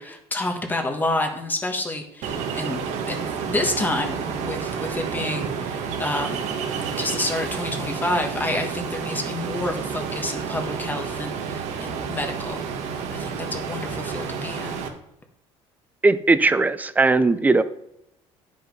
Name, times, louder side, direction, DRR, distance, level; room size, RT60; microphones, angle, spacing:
voice 1, 0.0-2.8 3.0-6.4 7.0-12.6 13.1-14.8, left 2 dB, 15° left, 3 dB, 1.4 m, -29 dB
Ocean, 2.2-14.9, right 6 dB, 70° right, 1.5 m, -30 dB
voice 2, 16.0-17.6, right 3 dB, 15° right, 13 dB, 0.5 m, -18 dB
10.0 x 5.4 x 5.4 m, 0.80 s
cardioid pair, 140°, 12 cm